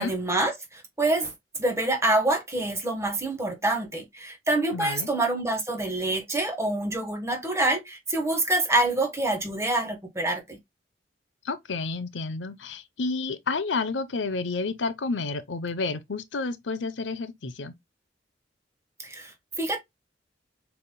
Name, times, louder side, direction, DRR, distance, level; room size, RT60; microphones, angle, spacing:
voice 1, 0.0-1.3 1.6-10.6 19.0-19.8, right 2 dB, 15° right, 1.3 m, -26 dB
voice 2, 4.7-5.1 11.4-17.7, left 3 dB, 80° left, 0.7 m, -30 dB
6.8 x 3.5 x 2.2 m
head